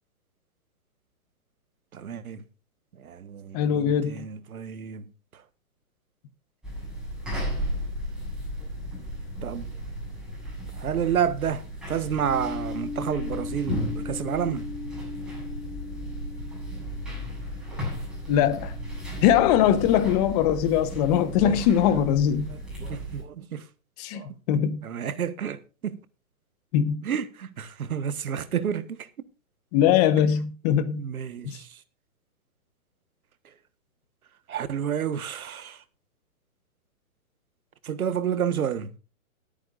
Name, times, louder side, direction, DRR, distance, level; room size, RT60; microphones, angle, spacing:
voice 1, 1.9-2.4 3.0-5.1 9.4-9.7 10.8-14.7 21.2-21.5 21.9-22.0 22.5-23.7 24.1-24.3 24.8-26.0 27.0-29.1 30.9-31.8 34.5-35.8 37.8-38.9, right 8 dB, 80° right, 1.5 m, -30 dB
voice 2, 3.5-4.3 18.3-18.8 19.2-22.5 24.0-24.8 26.7-27.1 29.7-31.0 31.4-31.6, left 10 dB, 30° left, 1.1 m, -22 dB
sound 1, 6.6-23.2, equal, ahead, 7.6 m, -35 dB
sound 2, 12.2-20.1, left 4 dB, 45° left, 6.8 m, -39 dB
20.5 x 9.2 x 2.5 m
hypercardioid pair, 145°, 42 cm